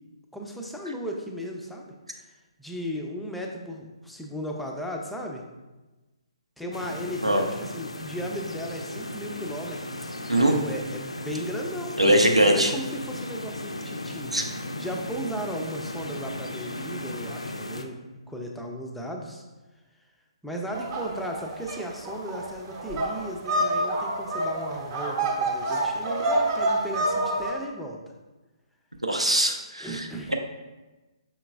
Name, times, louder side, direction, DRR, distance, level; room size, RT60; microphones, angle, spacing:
voice 1, 0.3-2.3 2.6-5.4 6.6-18.0 18.3-19.4 20.4-28.0 29.8-30.3, equal, ahead, 0 dB, 0.4 m, -36 dB
sound 1, 6.7-17.8, left 1 dB, 80° left, 0.4 m, -36 dB
voice 2, 12.0-12.7 14.3-14.4 29.0-30.3, right 1 dB, 90° right, 3 dB, 0.6 m, -21 dB
sound 2, 20.7-27.5, right 1 dB, 30° right, 0.8 m, -27 dB
5.7 x 3.8 x 2.3 m, 1.2 s
figure-of-eight pair, 135°, 3 cm